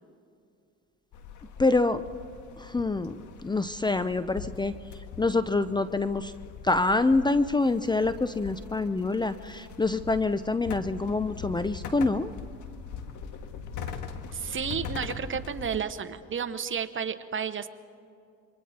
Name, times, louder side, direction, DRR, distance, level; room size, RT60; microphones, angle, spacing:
sound 1, 1.1-15.8, left 6 dB, 65° left, 1.9 m, -41 dB
voice 1, 1.6-2.0 2.6-4.7 5.2-6.3 6.6-12.3, left 3 dB, 15° left, 12 dB, 0.7 m, -26 dB
voice 2, 14.3-17.7, right 7 dB, 40° right, 10 dB, 1.3 m, -32 dB
27.5 x 23.5 x 4.4 m, 2.5 s
supercardioid pair, 80°, 32 cm